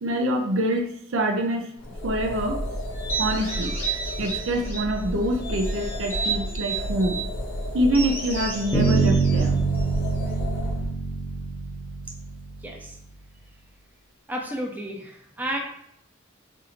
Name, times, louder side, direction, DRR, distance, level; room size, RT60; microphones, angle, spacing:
voice 1, 0.0-1.7 2.0-2.6 3.2-3.7 4.2-7.2 7.7-9.6, right 1 dB, 80° right, 3 dB, 0.6 m, -25 dB
sound 1, 1.8-10.9, equal, 65° left, 0.7 m, -32 dB
sound 2, 2.9-5.0 5.4-7.3 7.9-10.4, right 5 dB, 10° left, 1.0 m, -33 dB
Bass guitar, 8.7-12.7, right 4 dB, 30° left, 0.8 m, -24 dB
voice 2, 12.6-13.0 14.3-15.6, right 1 dB, 10° right, 0 dB, 0.5 m, -32 dB
2.7 x 2.6 x 4.3 m, 0.72 s
head